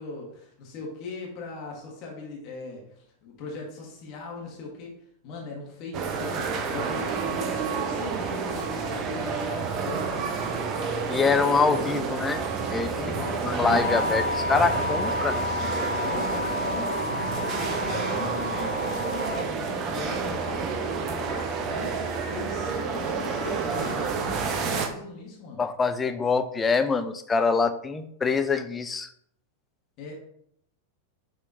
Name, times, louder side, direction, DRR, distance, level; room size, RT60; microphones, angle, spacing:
voice 1, 0.0-5.0 5.2-10.5 12.9-14.2 14.6-14.8 16.0-25.6 30.0-30.1, left 3 dB, 40° left, -1 dB, 1.1 m, -39 dB
sound 1, 5.9-24.9, right 5 dB, 35° right, 0.6 m, -29 dB
voice 2, 11.1-12.4 12.7-12.9 13.4-14.2 14.5-15.4 25.6-29.1, left 4 dB, 15° left, 9 dB, 0.4 m, -24 dB
sound 2, 13.8-19.4, left 3 dB, 70° left, 1.5 m, -31 dB
6.2 x 2.8 x 2.6 m, 0.70 s
figure-of-eight pair, 90°, 0 cm